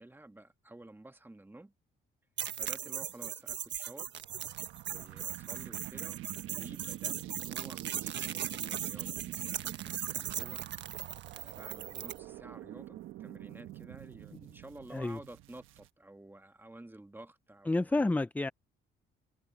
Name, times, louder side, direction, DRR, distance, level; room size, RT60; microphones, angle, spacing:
voice 1, 0.0-1.7 2.6-4.1 4.9-6.2 6.5-9.1 9.8-10.6 11.3-18.0, right 1 dB, 10° right, 1.6 m, -52 dB
sound 1, 2.4-12.2, right 10 dB, 65° right, 1.4 m, -39 dB
sound 2, 4.2-15.9, right 14 dB, 90° right, 1.2 m, -46 dB
voice 2, 17.7-18.5, left 2 dB, 10° left, 0.4 m, -29 dB
cardioid pair, 90°, 20 cm